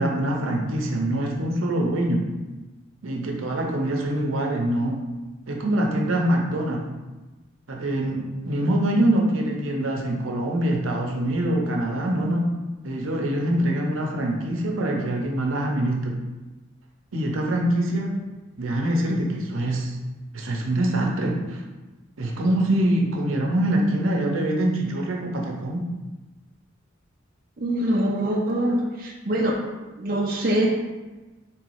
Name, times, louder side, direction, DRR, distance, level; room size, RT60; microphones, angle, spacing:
voice 1, 0.0-2.3 3.0-5.0 5.5-6.9 7.7-12.5 12.8-16.2 17.1-18.1 18.6-20.0 20.3-21.6 22.2-25.9, right 1 dB, 80° right, 0 dB, 0.8 m, -24 dB
voice 2, 27.6-29.5 30.0-30.7, right 1 dB, 45° right, -2 dB, 0.5 m, -24 dB
3.3 x 3.1 x 4.7 m, 1.2 s
head